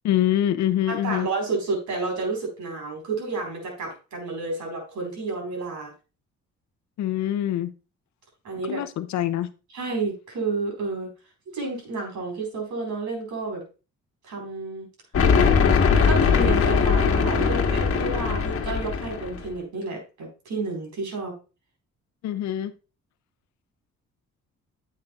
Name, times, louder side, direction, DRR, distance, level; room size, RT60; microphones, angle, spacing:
voice 1, 0.0-1.3 7.0-7.7 8.7-9.5 22.2-22.7, left 12 dB, 65° left, 0.6 m, -25 dB
voice 2, 0.9-5.9 8.4-8.8 9.7-11.1 11.5-13.6 14.2-14.9 15.8-21.3, right 3 dB, 75° right, 4.5 m, -30 dB
sound 1, 15.1-19.5, left 6 dB, 50° left, 1.4 m, -20 dB
9.7 x 7.5 x 2.4 m
cardioid pair, 90°, 30 cm